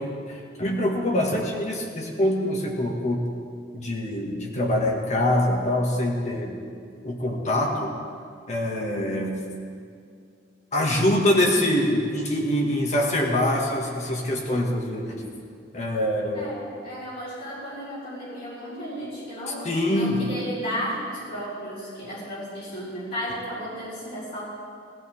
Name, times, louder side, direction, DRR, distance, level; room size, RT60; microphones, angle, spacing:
voice 1, 0.0-3.3 3.7-6.6 7.0-7.9 8.5-9.4 10.7-15.2 15.7-16.5 19.5-20.2, left 1 dB, 40° left, 0 dB, 1.9 m, -24 dB
voice 2, 16.3-24.6, equal, 55° left, -10 dB, 4.7 m, -34 dB
19.5 x 14.5 x 3.7 m, 2.3 s
head